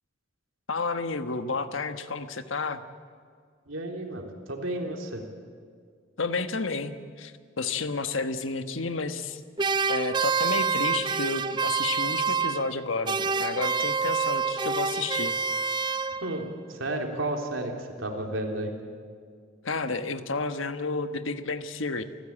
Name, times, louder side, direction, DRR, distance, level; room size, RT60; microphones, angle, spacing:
voice 1, 0.7-2.8 6.2-9.4 9.9-15.3 19.6-22.0, left 3 dB, 85° left, 9 dB, 1.3 m, -31 dB
voice 2, 3.7-5.2 16.2-18.7, right 1 dB, 90° right, 2 dB, 3.5 m, -32 dB
sound 1, 9.6-12.8 13.1-16.5, right 5 dB, 25° right, 0.5 m, -27 dB
28.5 x 15.0 x 8.9 m, 2.1 s
head